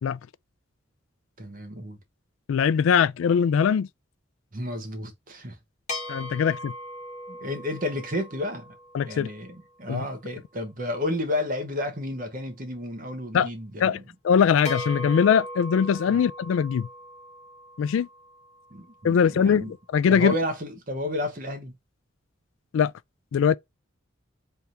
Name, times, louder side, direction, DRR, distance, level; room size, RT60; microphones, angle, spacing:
voice 1, 1.4-2.0 4.5-5.6 7.3-8.8 9.0-14.0 16.1-16.2 18.7-19.7 20.1-21.7, left 1 dB, 45° right, 1.1 m, -31 dB
voice 2, 2.5-3.9 6.1-6.7 8.9-9.3 9.9-10.0 13.3-13.5 13.8-14.0 14.2-16.9 17.8-18.1 19.0-20.3 22.7-22.9 23.3-23.6, left 7 dB, 85° left, 0.3 m, -21 dB
sound 1, 5.9-9.6 14.7-19.0, left 1 dB, 35° left, 1.1 m, -39 dB
3.4 x 2.7 x 4.4 m
head